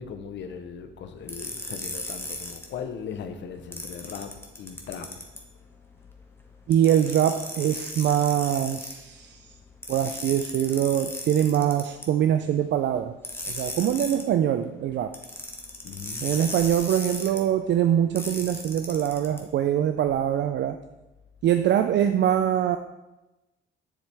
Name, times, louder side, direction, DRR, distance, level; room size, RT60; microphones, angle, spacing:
voice 1, 0.0-5.1 15.8-16.2, left 6 dB, 65° left, 0.8 m, -38 dB
sound 1, 1.3-2.6 3.7-5.4 6.7-8.9 9.8-12.1 13.2-14.2 15.1-17.4 18.1-19.4, left 1 dB, 10° left, 1.2 m, -36 dB
voice 2, 6.7-9.6 9.9-13.2 13.5-15.2 16.2-20.8 21.4-22.8, right 10 dB, 65° right, 0.4 m, -23 dB
7.2 x 7.1 x 3.4 m
cardioid pair, 90°, 20 cm